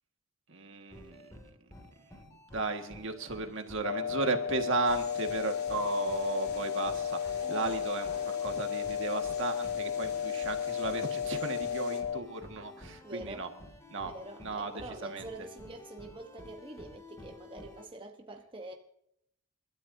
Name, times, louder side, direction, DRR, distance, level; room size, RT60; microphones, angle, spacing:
voice 1, 0.5-1.2 2.3-13.5 13.9-14.1 14.4-15.5, right 3 dB, 60° right, 1.9 m, -35 dB
sound 1, 0.9-17.9, left 1 dB, 15° left, 2.5 m, -52 dB
sound 2, 3.8-12.2, left 8 dB, 80° left, 0.5 m, -33 dB
sound 3, 4.8-12.0, left 4 dB, 50° left, 3.4 m, -51 dB
voice 2, 7.4-8.3 13.0-13.5 14.0-18.7, right 2 dB, 25° right, 1.1 m, -45 dB
29.0 x 13.0 x 2.8 m
head